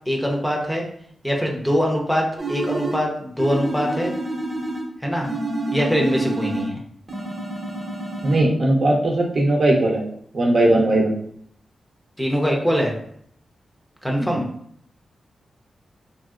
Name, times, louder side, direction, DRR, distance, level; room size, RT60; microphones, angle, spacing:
voice 1, 0.1-0.8 1.2-4.1 5.0-5.3 5.7-6.8 12.2-12.9 14.0-14.5, equal, 10° left, -1 dB, 0.7 m, -22 dB
sound 1, 2.4-3.1 3.4-4.9 5.2-6.8 7.1-8.4, right 2 dB, 25° right, 0.9 m, -28 dB
voice 2, 8.2-10.0 10.3-11.2 14.2-14.4, right 1 dB, 60° right, -1 dB, 0.7 m, -18 dB
2.8 x 2.7 x 2.4 m, 0.66 s
cardioid pair, 55°, 0 cm